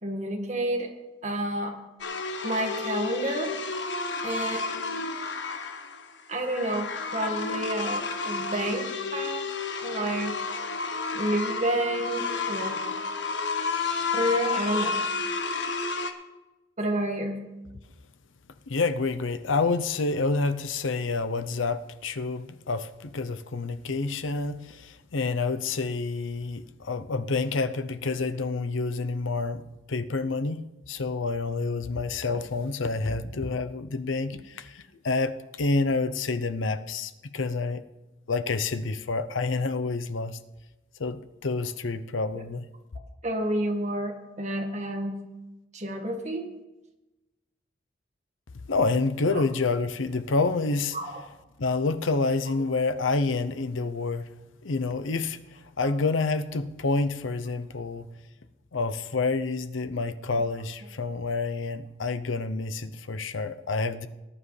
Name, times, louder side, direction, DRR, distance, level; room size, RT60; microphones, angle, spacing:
voice 1, 0.0-0.9 1.2-1.8 2.4-3.6 4.2-4.6 6.3-9.5 9.8-10.4 11.1-12.8 14.1-15.0 16.8-17.4 43.2-45.2 45.7-46.5 49.3-49.4 50.9-51.3 60.3-60.4, right 1 dB, 35° right, 1.7 m, -29 dB
sound 1, 2.0-16.1, left 4 dB, 65° left, 1.1 m, -31 dB
voice 2, 18.7-37.8 38.3-40.4 41.0-42.7 48.7-51.0 51.6-54.3 54.6-58.1 58.7-64.1, left 3 dB, 85° left, 0.7 m, -28 dB
19.5 x 9.8 x 3.3 m
head